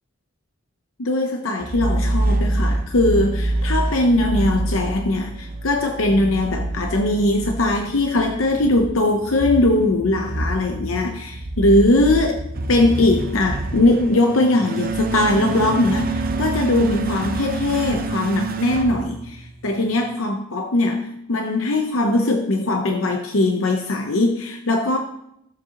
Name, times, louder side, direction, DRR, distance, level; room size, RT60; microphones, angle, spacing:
voice 1, 1.0-12.4 12.7-25.0, left 2 dB, 90° left, 4 dB, 0.8 m, -20 dB
sound 1, 1.6-19.8, right 2 dB, 45° right, 0.7 m, -26 dB
15.0 x 7.5 x 2.9 m, 0.79 s
head